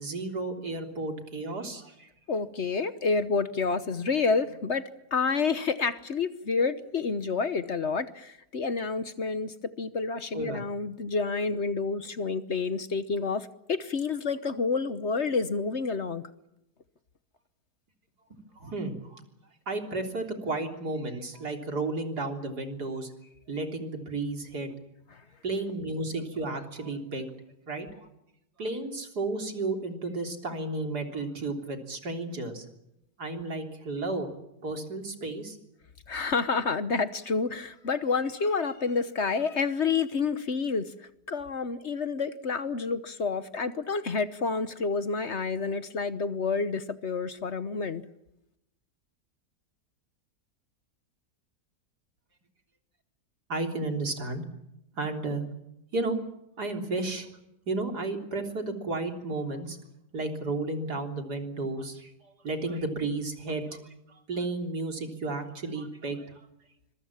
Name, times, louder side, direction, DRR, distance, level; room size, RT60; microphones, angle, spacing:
voice 1, 0.0-2.1 10.3-10.6 18.6-19.2 19.7-23.1 23.5-24.7 25.4-27.3 27.7-28.1 28.6-32.7 33.2-34.3 34.6-35.6 53.5-54.4 55.0-55.4 55.9-56.2 56.6-57.3 57.7-59.8 60.1-66.4, right 2 dB, 80° right, 4 dB, 4.0 m, -33 dB
voice 2, 2.3-16.2 36.1-40.9 41.3-48.0, left 4 dB, 50° left, 13 dB, 1.2 m, -29 dB
25.5 x 23.0 x 7.3 m, 0.84 s
omnidirectional pair, 1.7 m